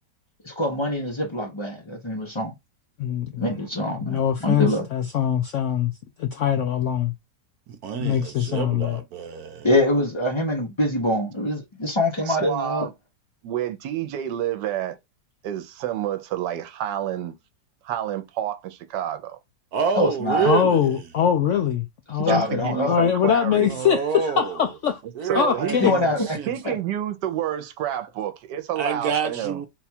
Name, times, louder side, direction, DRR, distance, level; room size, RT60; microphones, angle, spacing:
voice 1, 0.4-2.5 3.4-4.8 9.6-12.9 19.9-20.5 22.3-22.9 25.8-26.4 26.6-26.8, left 1 dB, 50° left, 0.3 m, -24 dB
voice 2, 3.0-3.5 3.9-5.9 6.2-7.1 8.0-9.0 20.4-25.0 25.3-25.9, left 9 dB, 80° left, 0.6 m, -23 dB
voice 3, 7.7-9.7 19.7-21.0 23.6-24.6 25.2-26.5 28.8-29.7, right 6 dB, 70° right, 1.1 m, -28 dB
voice 4, 12.3-12.9 13.4-15.0 15.4-17.3 17.8-19.4 22.2-23.8 25.2-25.9 26.5-29.6, right 11 dB, 85° right, 1.3 m, -29 dB
4.0 x 2.3 x 4.2 m
omnidirectional pair, 1.8 m